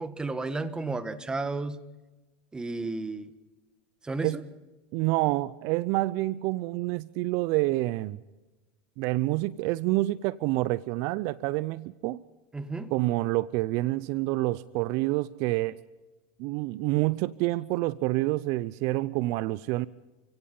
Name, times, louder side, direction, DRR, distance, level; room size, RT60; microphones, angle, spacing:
voice 1, 0.0-1.8 2.5-3.3 4.0-4.4 12.5-12.9, right 3 dB, 10° right, 1.6 m, -33 dB
voice 2, 4.9-8.2 9.0-12.2 12.9-15.8 16.4-19.9, right 19 dB, 55° right, 0.6 m, -28 dB
29.5 x 17.0 x 5.6 m
supercardioid pair, 110°, 6 cm